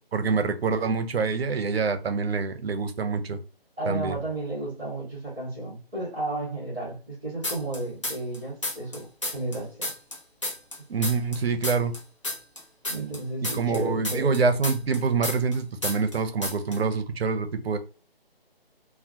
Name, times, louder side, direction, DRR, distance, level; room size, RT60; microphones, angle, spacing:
voice 1, 0.1-3.4 3.8-4.2 10.9-11.9 13.5-17.8, right 4 dB, 80° right, 0.6 m, -26 dB
voice 2, 3.8-9.1 9.3-9.9 12.9-14.3, right 2 dB, 5° right, 0.9 m, -32 dB
sound 1, 7.4-8.4 8.6-11.4 11.6-15.6 15.8-16.2 16.4-16.8, left 1 dB, 30° left, 0.5 m, -31 dB
2.2 x 2.1 x 2.7 m
figure-of-eight pair, 170°, 31 cm